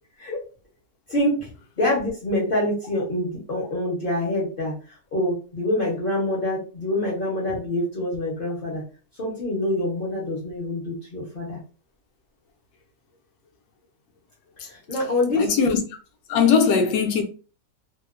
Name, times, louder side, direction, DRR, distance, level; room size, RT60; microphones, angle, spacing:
voice 1, 1.1-1.5 1.8-4.7 5.1-8.8 9.2-11.6 14.7-15.5, left 1 dB, 45° left, 0.7 m, -25 dB
voice 2, 15.3-15.8 16.3-17.2, left 6 dB, 70° left, 1.0 m, -19 dB
2.9 x 2.0 x 2.4 m
omnidirectional pair, 1.8 m